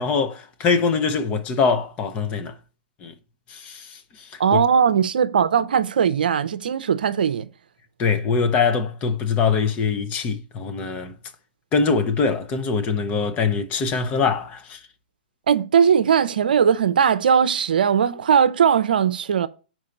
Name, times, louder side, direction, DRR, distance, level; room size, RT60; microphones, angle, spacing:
voice 1, 0.0-2.5 3.0-3.1 3.5-4.6 8.0-11.1 11.7-14.8, left 5 dB, 25° left, 0.9 m, -23 dB
voice 2, 4.4-7.5 15.5-19.5, right 7 dB, 70° right, 0.6 m, -19 dB
5.7 x 4.6 x 6.5 m
hypercardioid pair, 130°, 5 cm